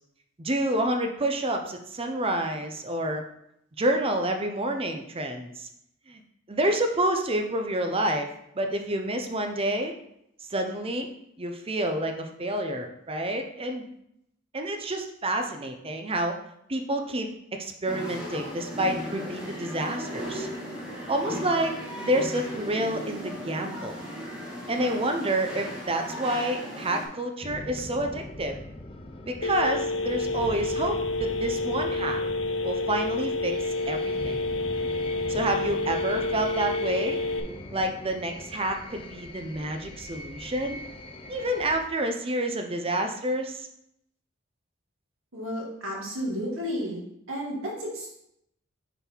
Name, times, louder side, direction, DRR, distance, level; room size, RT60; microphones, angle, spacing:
voice 1, 0.4-3.2 3.8-5.7 6.1-6.2 6.5-8.3 8.5-9.9 10.5-11.1 11.4-13.9 14.5-16.4 16.7-20.5 21.1-24.0 24.7-28.6 29.3-32.2 32.6-34.4 35.3-37.2 37.7-40.8 41.3-43.7, right 1 dB, 30° right, 5 dB, 0.7 m, -28 dB
sound 1, 17.8-27.0, equal, 5° right, 1.4 m, -36 dB
sound 2, 27.4-41.8, left 1 dB, 30° left, 0.6 m, -41 dB
Telephone, 29.4-37.4, left 3 dB, 70° left, 0.6 m, -29 dB
voice 2, 45.3-47.0 47.3-48.1, equal, 85° right, -3 dB, 2.2 m, -32 dB
6.8 x 4.2 x 4.6 m, 0.77 s
head